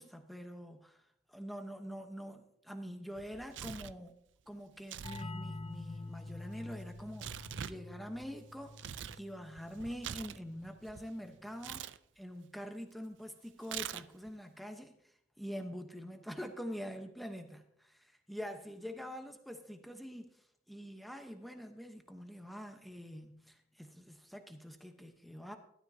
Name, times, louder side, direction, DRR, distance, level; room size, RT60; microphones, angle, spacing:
voice 1, 0.0-0.8 1.3-4.1 4.5-11.8 12.2-14.9 15.4-20.3 20.7-25.6, equal, ahead, 5 dB, 1.0 m, -45 dB
Tearing, 3.2-4.0 4.8-5.3 5.5-9.2 9.6-11.1 11.6-12.0 13.6-14.3, right 9 dB, 70° right, 0.4 m, -44 dB
sound 1, 5.0-10.5, left 2 dB, 30° left, 0.5 m, -47 dB
16.0 x 12.5 x 2.8 m, 0.77 s
head